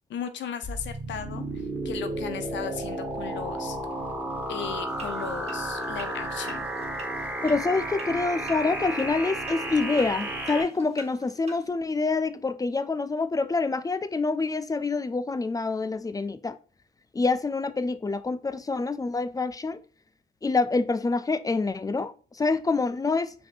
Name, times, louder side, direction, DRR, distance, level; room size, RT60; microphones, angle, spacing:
voice 1, 0.1-3.8 4.5-6.7, left 8 dB, 65° left, 0.7 m, -36 dB
sound 1, 0.6-10.6, right 1 dB, 10° right, 1.1 m, -33 dB
sound 2, 4.9-11.7, right 2 dB, 30° right, 1.4 m, -48 dB
voice 2, 7.4-16.6 17.1-19.8 20.4-23.3, left 3 dB, 20° left, 0.4 m, -26 dB
5.1 x 3.6 x 2.5 m
cardioid pair, 90°, 20 cm